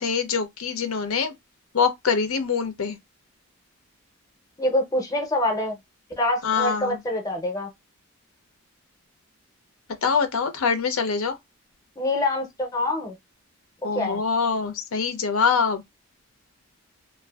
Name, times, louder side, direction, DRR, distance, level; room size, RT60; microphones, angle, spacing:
voice 1, 0.0-1.3 1.7-3.0 6.4-7.0 10.0-11.4 13.8-15.8, left 5 dB, 90° left, 0.6 m, -24 dB
voice 2, 4.6-5.8 6.2-7.7 12.0-13.1 13.9-14.2, left 1 dB, 15° left, 0.6 m, -25 dB
2.5 x 2.3 x 2.2 m
head